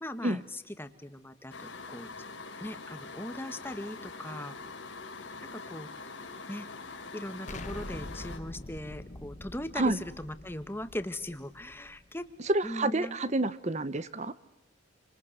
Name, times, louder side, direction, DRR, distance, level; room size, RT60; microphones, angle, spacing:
voice 1, 0.0-2.1 2.6-4.5 5.5-6.2 6.5-6.7 7.1-12.3 12.6-13.2, left 1 dB, 10° left, 10 dB, 1.6 m, -39 dB
sound 1, 1.5-8.4, left 4 dB, 85° left, 4.3 m, -44 dB
Explosion, 7.5-12.3, left 1 dB, 40° left, 1.4 m, -45 dB
voice 2, 12.5-14.3, right 2 dB, 40° right, 14 dB, 1.0 m, -28 dB
28.5 x 26.5 x 6.9 m, 0.89 s
head